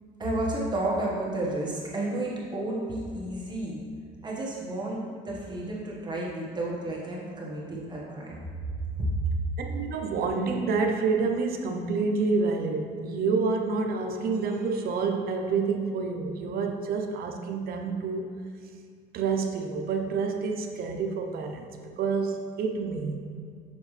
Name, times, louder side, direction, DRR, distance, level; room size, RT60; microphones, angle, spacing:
voice 1, 0.2-3.8 4.2-8.4 9.0-9.1, right 1 dB, 25° right, -5 dB, 1.5 m, -31 dB
voice 2, 9.6-18.3 19.1-21.7 22.0-23.2, right 4 dB, 65° right, 3 dB, 0.7 m, -28 dB
6.9 x 5.1 x 3.3 m, 2.2 s
cardioid pair, 110°, 17 cm